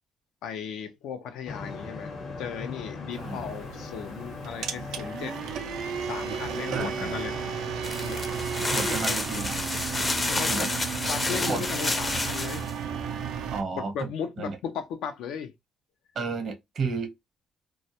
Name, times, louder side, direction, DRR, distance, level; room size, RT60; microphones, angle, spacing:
voice 1, 0.4-5.4 6.0-7.4 8.0-8.2 8.8-9.2 10.3-10.7 11.1-12.7 13.7-15.5, left 7 dB, 85° left, 0.5 m, -36 dB
sound 1, 1.5-9.3, left 4 dB, 65° left, 0.9 m, -40 dB
sound 2, 3.1-13.6, right 7 dB, 85° right, 0.4 m, -34 dB
voice 2, 6.7-7.2 8.7-9.6 10.5-10.7 11.5-11.6 13.5-14.1 14.4-14.6 16.1-17.1, right 4 dB, 60° right, 0.7 m, -32 dB
sound 3, 7.8-12.7, left 2 dB, 25° left, 0.5 m, -30 dB
2.3 x 2.0 x 2.7 m
cardioid pair, 90°, 0 cm